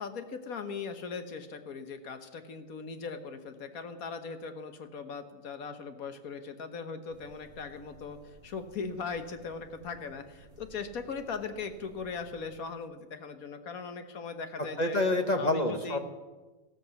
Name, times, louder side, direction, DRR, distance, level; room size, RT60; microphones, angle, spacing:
voice 1, 0.0-8.2 8.4-15.0 15.3-16.0, left 5 dB, 60° left, 8 dB, 1.6 m, -39 dB
sound 1, 7.1-12.6, right 3 dB, 40° right, 3.5 m, -57 dB
voice 2, 14.8-16.0, left 2 dB, 30° left, 6 dB, 1.0 m, -27 dB
15.0 x 13.5 x 7.1 m, 1.2 s
omnidirectional pair, 1.7 m